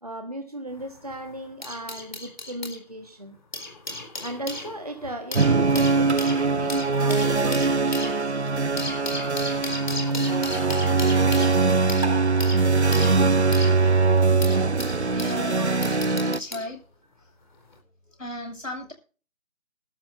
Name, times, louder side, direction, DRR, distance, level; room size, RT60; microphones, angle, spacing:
voice 1, 0.0-3.4 4.2-8.5 13.5-14.1 15.2-16.1 16.5-16.6, right 1 dB, 25° right, 1.3 m, -37 dB
sound 1, 0.7-2.8 3.3-15.4 15.8-16.7 17.6-17.8, left 2 dB, 35° left, 4.2 m, -36 dB
sound 2, 5.3-16.4, right 4 dB, 50° right, 0.8 m, -22 dB
voice 2, 15.0-15.7 16.2-16.8 18.1-18.9, left 1 dB, 65° left, 7.1 m, -35 dB
24.0 x 12.0 x 2.6 m
figure-of-eight pair, 170°, 42 cm